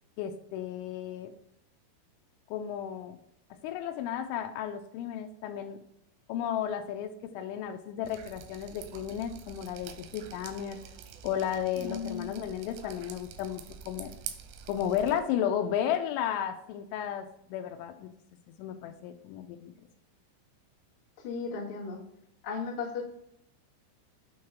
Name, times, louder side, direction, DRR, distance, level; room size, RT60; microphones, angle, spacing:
voice 1, 0.2-1.3 2.5-3.2 3.6-5.8 6.3-10.8 11.2-14.1 14.7-18.1 18.5-19.7, left 9 dB, 85° left, 7 dB, 2.8 m, -33 dB
Drip, 8.0-15.2, right 9 dB, 85° right, 3.1 m, -46 dB
voice 2, 11.8-12.3 21.2-22.0 22.4-23.0, left 5 dB, 60° left, -5 dB, 1.3 m, -35 dB
8.5 x 3.2 x 5.8 m, 0.77 s
omnidirectional pair, 5.7 m